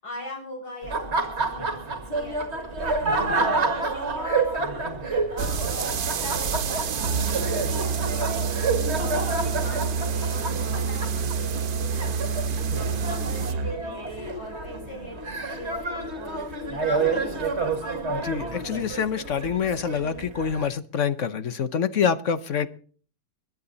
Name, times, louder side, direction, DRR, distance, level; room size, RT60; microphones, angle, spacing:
voice 1, 0.0-12.2 12.9-17.4, equal, 85° left, 0 dB, 7.8 m, -41 dB
Laughter, 0.8-20.7, right 3 dB, 45° right, 2.1 m, -29 dB
sound 1, 5.4-13.5, right 6 dB, 70° right, 1.5 m, -32 dB
Musical instrument, 7.0-13.9, right 5 dB, 90° right, 1.5 m, -29 dB
voice 2, 18.1-22.7, left 7 dB, 55° left, 13 dB, 1.1 m, -26 dB
21.5 x 10.5 x 4.0 m, 0.42 s
omnidirectional pair, 1.7 m